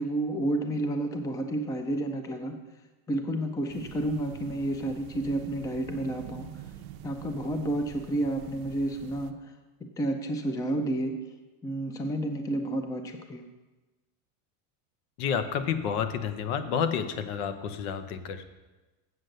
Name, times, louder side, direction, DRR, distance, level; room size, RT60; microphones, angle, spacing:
voice 1, 0.0-2.5 3.1-6.6 7.0-9.3 10.0-11.1 11.6-13.5, right 1 dB, 10° left, 6 dB, 0.4 m, -30 dB
sound 1, 3.7-9.3, right 11 dB, 50° right, 0.7 m, -45 dB
voice 2, 15.2-18.4, left 7 dB, 70° left, 10 dB, 1.1 m, -30 dB
7.9 x 7.5 x 6.5 m, 1.1 s
supercardioid pair, 140°, 46 cm